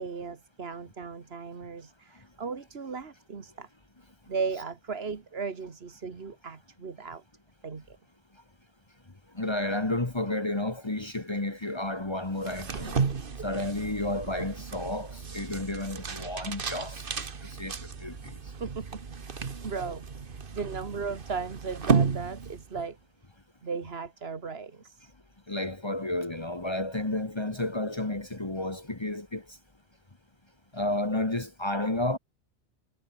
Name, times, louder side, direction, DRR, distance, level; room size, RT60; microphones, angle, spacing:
voice 1, 0.0-3.7 4.3-7.2 7.6-8.0 12.8-13.0 18.6-23.0 23.6-25.1, right 5 dB, 75° right, 1.9 m, -36 dB
voice 2, 9.3-13.0 13.4-17.0 17.6-18.3 25.5-29.4 30.7-32.2, left 1 dB, 25° left, 1.5 m, -31 dB
sound 1, 12.4-22.9, right 5 dB, 60° right, 1.5 m, -33 dB
omnidirectional pair, 1.0 m